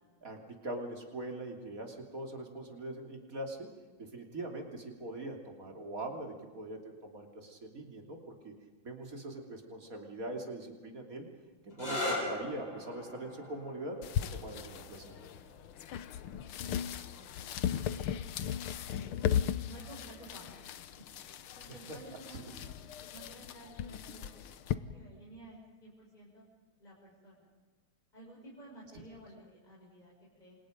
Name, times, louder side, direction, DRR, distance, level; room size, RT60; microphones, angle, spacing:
voice 1, 0.2-3.7 4.0-8.5 8.8-11.3 11.6-14.0 14.3-15.3 21.7-21.8 22.3-22.4, right 1 dB, 40° right, 2 dB, 3.5 m, -42 dB
sound 1, 11.7-19.1 20.1-20.7 24.2-24.5, left 1 dB, 60° left, 8.4 m, -42 dB
sound 2, 14.0-24.8, left 9 dB, 80° left, 1.8 m, -37 dB
voice 2, 14.9-15.3 16.3-18.3 18.9-19.3 19.6-21.0 21.5-26.4 26.8-27.5 28.1-30.6, right 1 dB, 20° left, -5 dB, 6.2 m, -54 dB
29.0 x 25.5 x 5.2 m, 1.3 s
omnidirectional pair, 2.3 m